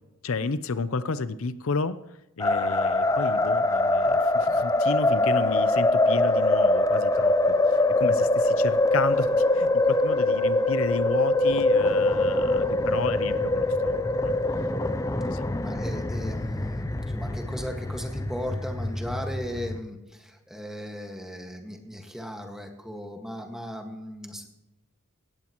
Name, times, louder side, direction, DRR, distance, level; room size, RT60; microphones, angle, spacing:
voice 1, 0.2-2.0 2.4-14.3 15.0-15.5, left 4 dB, 75° left, 14 dB, 0.6 m, -32 dB
sound 1, 2.4-19.8, left 2 dB, 15° left, 0.5 m, -24 dB
voice 2, 15.6-24.5, equal, ahead, 3 dB, 1.7 m, -37 dB
18.0 x 14.5 x 3.1 m, 0.94 s
head